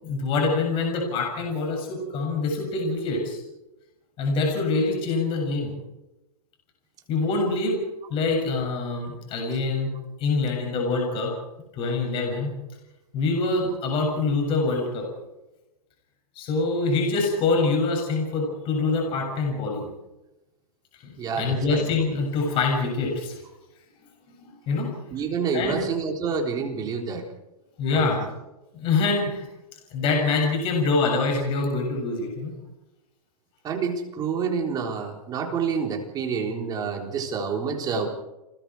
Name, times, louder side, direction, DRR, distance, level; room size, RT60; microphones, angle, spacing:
voice 1, 0.0-3.4 4.2-5.8 7.1-7.8 8.1-9.9 10.2-11.3 11.8-12.5 13.1-15.1 16.4-19.9 21.0-23.4 24.5-24.9 25.5-25.9 27.8-28.2 28.7-29.5 29.9-32.5, left 3 dB, 25° left, 1 dB, 7.3 m, -25 dB
voice 2, 21.2-21.9 25.1-27.3 27.9-28.2 33.6-38.1, right 5 dB, 20° right, 2 dB, 3.7 m, -28 dB
29.5 x 21.0 x 4.8 m, 0.98 s
hypercardioid pair, 155°, 20 cm